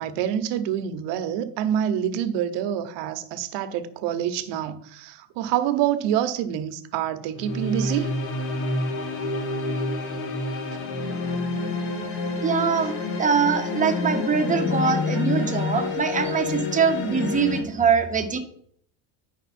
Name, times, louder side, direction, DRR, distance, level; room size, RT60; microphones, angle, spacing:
voice 1, 0.0-8.1 14.8-15.9 16.3-16.4, right 10 dB, 70° right, 0.9 m, -27 dB
sound 1, 7.3-17.6, left 3 dB, 75° left, 1.8 m, -28 dB
voice 2, 12.4-18.4, right 5 dB, 15° right, 0.9 m, -23 dB
9.9 x 5.3 x 4.2 m
cardioid pair, 135°, 44 cm